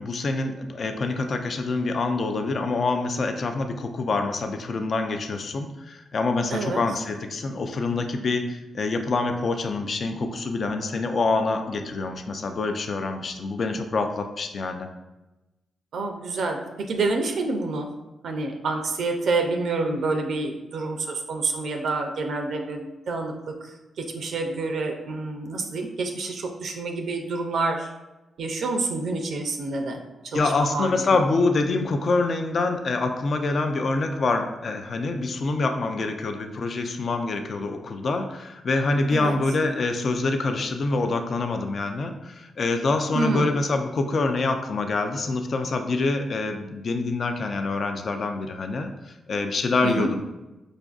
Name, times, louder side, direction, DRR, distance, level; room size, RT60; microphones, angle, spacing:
voice 1, 0.0-14.9 30.3-50.2, left 3 dB, 60° left, 6 dB, 0.4 m, -26 dB
voice 2, 6.5-6.8 15.9-17.9 18.2-23.3 23.6-27.9 28.4-30.0 30.2-31.2 39.1-39.4 43.1-43.5 49.8-50.1, right 3 dB, 75° right, 3 dB, 0.4 m, -28 dB
5.1 x 2.5 x 2.3 m, 1.0 s
supercardioid pair, 50°, 0 cm